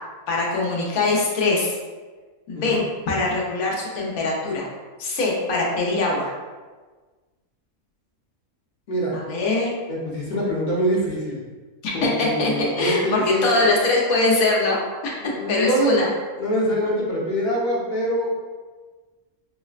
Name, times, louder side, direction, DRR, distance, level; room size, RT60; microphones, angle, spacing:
voice 1, 0.3-1.8 2.5-2.8 3.1-4.6 5.0-6.3 9.1-9.7 11.8-16.1, left 2 dB, 85° left, -3 dB, 1.2 m, -22 dB
voice 2, 8.9-9.2 9.9-11.4 11.9-13.6 15.2-16.0 16.4-18.3, equal, 40° left, -5 dB, 0.8 m, -24 dB
5.4 x 2.1 x 2.4 m, 1.3 s
omnidirectional pair, 1.5 m